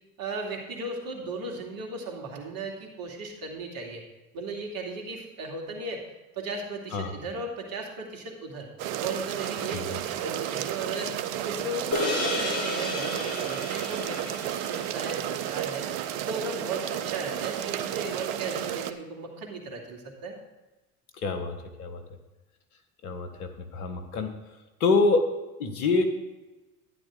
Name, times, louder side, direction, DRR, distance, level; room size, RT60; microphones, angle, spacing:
voice 1, 0.2-4.0 4.3-6.0 6.4-8.7 9.0-15.8 16.3-20.4, right 3 dB, 50° right, 1 dB, 2.7 m, -36 dB
sound 1, 8.8-18.9, right 11 dB, 65° right, 0.9 m, -32 dB
sound 2, 11.9-16.5, left 2 dB, 35° left, 3.3 m, -33 dB
voice 2, 21.1-22.0 23.0-24.3 24.8-25.2 25.6-26.0, left 3 dB, 80° left, 7 dB, 1.5 m, -26 dB
12.0 x 10.5 x 3.8 m, 1.1 s
hypercardioid pair, 70°, 44 cm